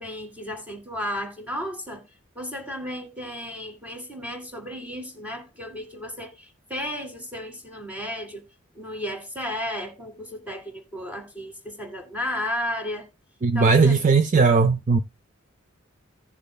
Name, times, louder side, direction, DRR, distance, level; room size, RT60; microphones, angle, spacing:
voice 1, 0.0-2.1 2.4-8.4 8.8-13.1 13.5-14.0, left 1 dB, 5° right, 2.0 m, -33 dB
voice 2, 13.4-15.0, right 4 dB, 40° right, 0.4 m, -18 dB
16.5 x 6.8 x 2.2 m
head